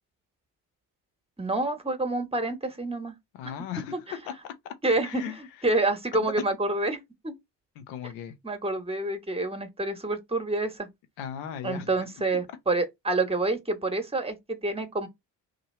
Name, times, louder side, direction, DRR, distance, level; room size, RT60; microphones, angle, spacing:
voice 1, 1.4-3.1 3.4-3.5 3.9-4.0 4.8-5.2 5.6-7.3 8.4-10.9 11.6-15.1, right 2 dB, 15° right, 1.2 m, -28 dB
voice 2, 3.4-4.5 5.0-5.4 6.2-6.5 7.8-8.4 11.2-12.1, left 9 dB, 80° left, 0.8 m, -37 dB
2.8 x 2.6 x 4.2 m
hypercardioid pair, 50°, 45 cm